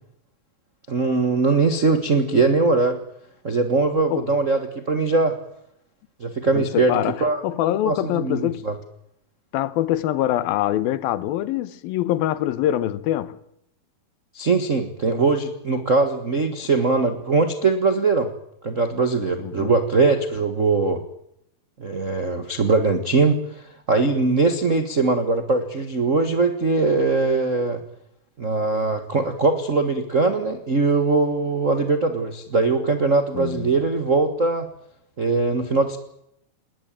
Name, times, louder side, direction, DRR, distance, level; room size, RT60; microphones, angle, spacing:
voice 1, 0.9-3.0 3.4-5.4 6.2-6.9 7.2-7.4 7.8-8.7 14.3-18.3 18.6-21.0 21.8-23.4 23.9-27.8 28.4-34.7 35.2-36.0, right 3 dB, 60° right, 0.7 m, -21 dB
voice 2, 6.5-8.7 9.5-13.4 19.4-19.8 33.3-33.7, left 13 dB, 80° left, 2.8 m, -24 dB
20.0 x 20.0 x 9.0 m
omnidirectional pair, 4.2 m